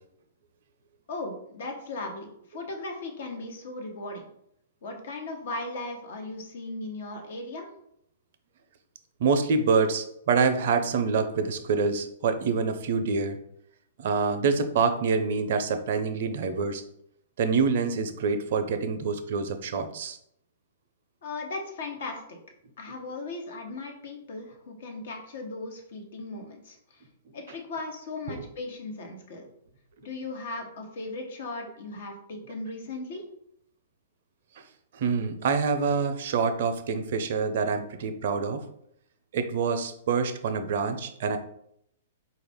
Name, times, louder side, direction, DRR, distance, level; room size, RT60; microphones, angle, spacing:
voice 1, 1.1-4.2 4.8-7.7 21.2-22.4 22.8-27.0 27.3-29.4 30.0-33.2, left 2 dB, 65° left, 3 dB, 1.0 m, -37 dB
voice 2, 9.2-13.4 14.0-16.8 17.4-20.2 28.3-28.5 34.9-38.6 39.3-41.4, right 5 dB, 60° right, 8 dB, 0.5 m, -26 dB
4.2 x 2.3 x 3.5 m, 0.72 s
hypercardioid pair, 115°, 0 cm